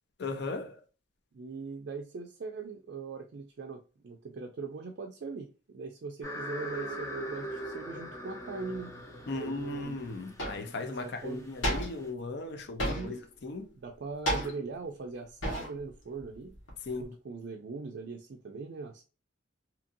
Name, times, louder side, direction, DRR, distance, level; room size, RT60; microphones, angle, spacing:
voice 1, 0.2-0.8 9.3-13.7 16.8-17.2, left 3 dB, 55° left, 0.5 m, -37 dB
voice 2, 1.3-8.9 9.3-10.0 10.8-11.4 12.8-13.2 13.8-16.5 17.0-19.0, right 4 dB, 55° right, 0.4 m, -41 dB
sound 1, 6.2-12.0, equal, 15° left, 0.7 m, -41 dB
sound 2, 9.7-9.8 10.4-10.8 11.6-12.2 12.8-13.3 14.3-14.8 15.4-15.9 16.2-17.0, equal, 75° left, 1.2 m, -33 dB
2.8 x 2.6 x 2.5 m
head